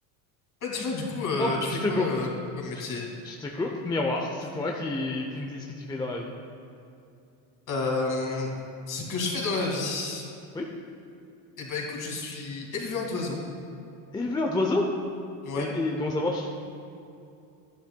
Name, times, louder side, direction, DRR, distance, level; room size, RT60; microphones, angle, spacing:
voice 1, 0.6-2.3 2.6-3.1 7.7-8.5 8.9-10.2 11.6-13.4 15.4-15.7, left 3 dB, 40° left, 0 dB, 2.1 m, -30 dB
voice 2, 1.4-2.1 2.7-2.8 3.2-6.3 10.5-10.7 14.1-14.9 15.5-16.5, left 2 dB, 10° left, 0 dB, 0.5 m, -29 dB
11.5 x 10.5 x 2.2 m, 2.6 s
supercardioid pair, 110°, 46 cm